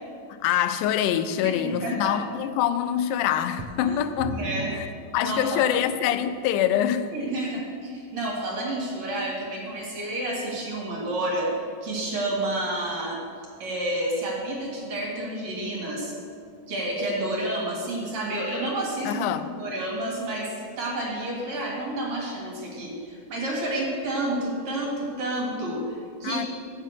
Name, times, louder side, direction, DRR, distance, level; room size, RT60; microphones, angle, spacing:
voice 1, 0.4-4.3 4.7-4.9 5.1-7.1 19.1-19.5 26.2-26.5, left 10 dB, 90° left, 2.1 m, -25 dB
voice 2, 1.4-2.1 3.8-4.0 4.3-4.7 5.2-5.6 7.1-11.5 11.8-13.2 13.6-16.1 16.7-26.5, right 1 dB, 60° right, 3.1 m, -30 dB
sound 1, 3.6-6.0 6.7-6.8 7.4-7.5, right 3 dB, 90° right, 1.3 m, -38 dB
7.4 x 7.4 x 6.5 m
omnidirectional pair, 3.6 m